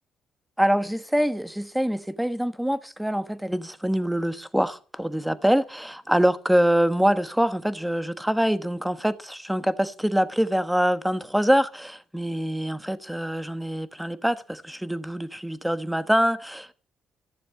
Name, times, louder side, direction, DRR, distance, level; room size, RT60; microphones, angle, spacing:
voice 1, 0.6-16.7, equal, 5° right, 1.2 m, -24 dB
14.5 x 7.1 x 8.3 m
cardioid pair, 90°, 0 cm